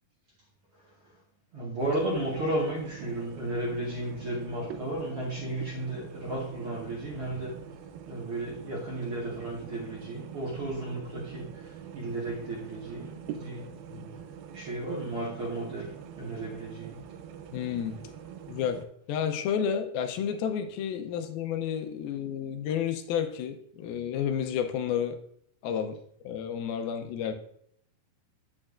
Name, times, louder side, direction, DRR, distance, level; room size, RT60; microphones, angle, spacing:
voice 1, 0.8-1.2 1.5-7.6 8.0-13.7 14.5-17.1, right 1 dB, 55° right, 1.7 m, -34 dB
sound 1, 1.8-18.9, right 8 dB, 80° right, 2.3 m, -45 dB
voice 2, 17.5-18.0 18.5-18.8 19.1-25.2 25.6-25.9 26.2-27.3, left 8 dB, 85° left, 2.5 m, -31 dB
8.7 x 8.7 x 2.5 m
omnidirectional pair, 4.3 m